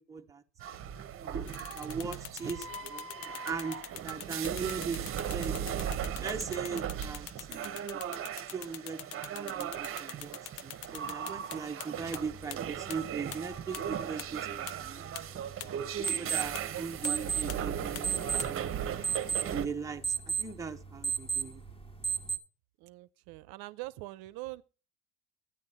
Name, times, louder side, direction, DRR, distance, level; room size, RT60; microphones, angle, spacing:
voice 1, 0.1-0.4 1.2-3.1 3.4-5.1 5.3-5.6 6.2-8.0 8.5-9.0 9.3-14.4 14.8-15.0 16.0-18.1 18.5-18.7 19.5-21.6, right 5 dB, 10° right, 0.8 m, -39 dB
sound 1, 0.6-19.7, right 9 dB, 30° right, 1.0 m, -37 dB
sound 2, 1.5-11.9 12.1-12.2 12.5-12.6 12.9-13.0 13.3-13.4 13.7-13.8 14.2-14.3 14.7-14.8 15.2-15.3 15.6-15.7 16.1-16.2 16.6-16.7 17.0-17.1 17.5-17.6 18.0-18.1 18.4-18.5, left 13 dB, 65° left, 0.8 m, -42 dB
sound 3, 12.0-22.4, right 6 dB, 15° left, 1.5 m, -37 dB
voice 2, 22.8-24.6, right 20 dB, 65° right, 0.7 m, -43 dB
11.5 x 9.7 x 4.2 m
cardioid pair, 135°, 41 cm